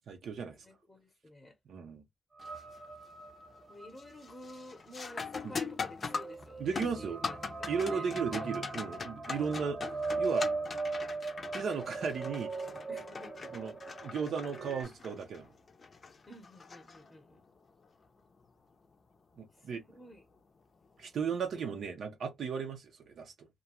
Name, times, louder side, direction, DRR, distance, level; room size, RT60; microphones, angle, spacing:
voice 1, 0.1-0.6 1.7-2.0 5.4-5.5 6.6-7.2 7.7-9.8 10.2-10.5 11.5-12.5 13.5-13.7 14.0-15.5 19.4-19.8 21.0-23.5, right 6 dB, 75° right, 0.6 m, -35 dB
voice 2, 0.6-1.6 3.7-8.5 9.3-9.5 12.9-13.3 16.3-17.4 19.6-20.2, left 1 dB, 10° left, 0.7 m, -51 dB
sound 1, 2.4-2.8 3.2-3.6 4.0-17.5 20.0-20.1 20.9-21.2, left 4 dB, 40° left, 0.5 m, -42 dB
sound 2, 2.4-14.8, right 3 dB, 25° right, 0.8 m, -39 dB
2.5 x 2.2 x 2.8 m
wide cardioid pair, 130°, 0 cm